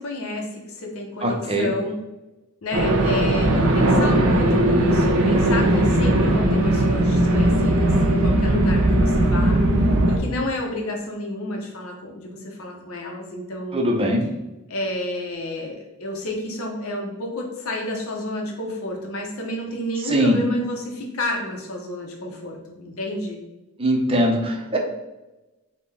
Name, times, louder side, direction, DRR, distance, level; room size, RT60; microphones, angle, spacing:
voice 1, 0.0-2.0 2.6-13.9 14.7-23.4, left 1 dB, 70° left, 0 dB, 0.8 m, -30 dB
voice 2, 1.2-1.7 13.7-14.3 20.0-20.4 23.8-24.8, equal, 25° right, 1 dB, 0.5 m, -21 dB
sound 1, 2.7-10.2, right 1 dB, 75° right, 0.6 m, -18 dB
5.1 x 2.2 x 3.3 m, 1.0 s
head